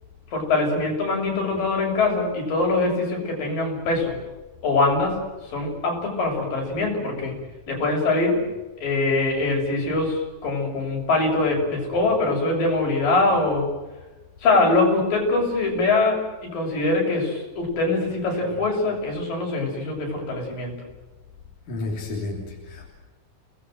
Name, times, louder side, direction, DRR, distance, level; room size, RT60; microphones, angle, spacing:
voice 1, 0.3-4.2 4.6-5.1 5.5-7.3 7.7-8.4 8.8-13.7 14.4-20.7, left 3 dB, 85° left, 0 dB, 8.4 m, -23 dB
voice 2, 21.7-22.9, left 2 dB, 65° left, -1 dB, 4.8 m, -31 dB
30.0 x 20.0 x 7.8 m, 1.1 s
omnidirectional pair, 3.9 m